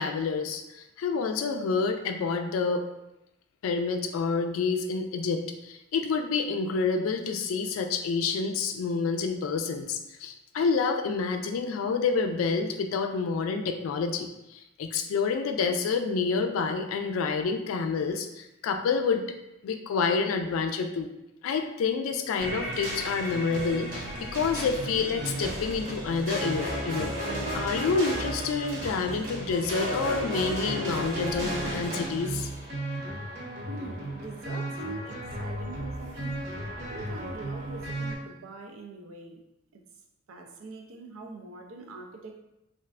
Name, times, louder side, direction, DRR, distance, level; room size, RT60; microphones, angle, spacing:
voice 1, 0.0-2.9 3.6-19.2 19.6-21.1 21.4-27.2 27.5-32.5, left 5 dB, 90° left, 6 dB, 0.3 m, -28 dB
sound 1, 22.4-38.1, right 1 dB, 40° right, 0.8 m, -34 dB
voice 2, 33.7-36.4 36.7-39.4 39.7-39.8 40.3-42.4, right 3 dB, 85° right, 3 dB, 0.4 m, -43 dB
3.2 x 2.4 x 2.4 m, 0.88 s
head